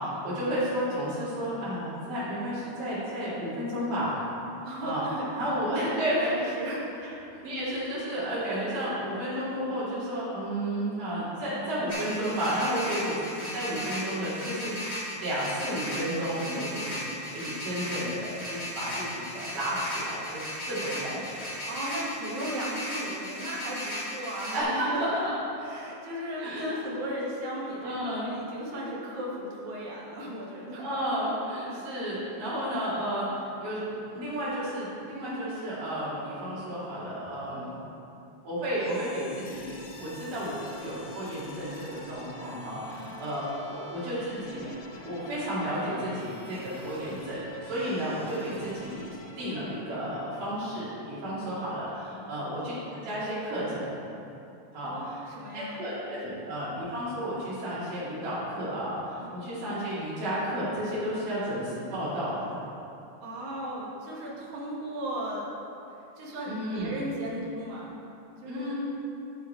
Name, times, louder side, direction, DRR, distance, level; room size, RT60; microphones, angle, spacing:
voice 1, 0.0-4.2 4.8-5.0 5.4-6.5 7.0-7.1 7.4-14.8 15.1-16.9 17.3-20.4 20.7-21.6 24.5-25.3 26.4-26.7 27.8-28.3 30.8-37.8 38.4-44.7 45.0-54.0 54.7-55.2 55.5-62.6 66.5-66.9 68.5-68.7, equal, 85° right, -11 dB, 4.3 m, -32 dB
voice 2, 4.6-5.4 6.1-7.0 7.3-7.4 16.5-16.7 21.7-25.3 25.6-30.9 31.6-31.9 42.9-43.1 52.2-52.3 54.8-56.4 59.2-59.3 63.2-65.6 66.2-67.9 68.4-68.7, right 1 dB, 70° right, -4 dB, 2.9 m, -36 dB
sound 1, 11.9-24.6, equal, 25° left, 0.9 m, -36 dB
sound 2, 38.7-52.6, left 2 dB, 85° left, 2.7 m, -48 dB
13.5 x 5.5 x 4.5 m, 2.8 s
omnidirectional pair, 3.6 m